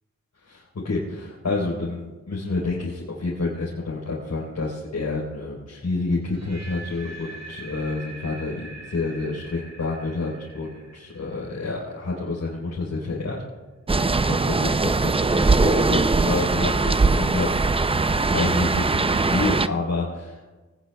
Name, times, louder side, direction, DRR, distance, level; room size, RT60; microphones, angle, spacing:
voice 1, 0.4-13.4 14.3-17.6 18.3-20.5, left 3 dB, 75° left, -5 dB, 3.9 m, -29 dB
sound 1, 6.3-12.3, right 2 dB, 55° right, 2.6 m, -43 dB
sound 2, 13.9-19.7, right 3 dB, 20° right, 0.4 m, -21 dB
23.0 x 19.0 x 2.3 m, 1.2 s
wide cardioid pair, 115°, 29 cm